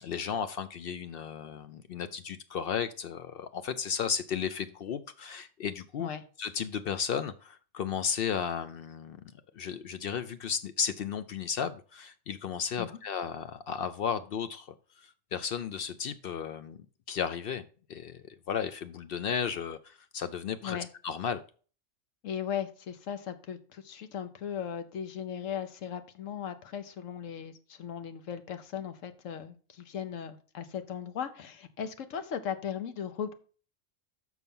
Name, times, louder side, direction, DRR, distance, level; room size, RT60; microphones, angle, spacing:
voice 1, 0.0-6.1 6.4-9.2 9.6-14.7 15.0-16.8 17.1-17.6 17.9-20.8 21.0-21.4, left 7 dB, 60° left, 0.6 m, -34 dB
voice 2, 22.2-33.3, left 8 dB, 80° left, 1.2 m, -37 dB
6.3 x 5.6 x 5.3 m
omnidirectional pair, 1.3 m